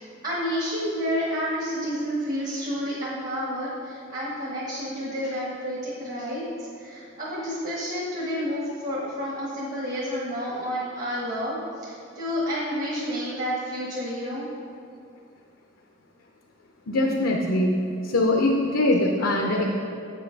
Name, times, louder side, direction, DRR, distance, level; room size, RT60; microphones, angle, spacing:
voice 1, 0.2-14.5, equal, 45° right, -6 dB, 1.5 m, -30 dB
voice 2, 16.9-17.7 18.0-19.6, left 1 dB, 75° left, 0 dB, 0.7 m, -22 dB
8.2 x 5.8 x 5.2 m, 2.4 s
head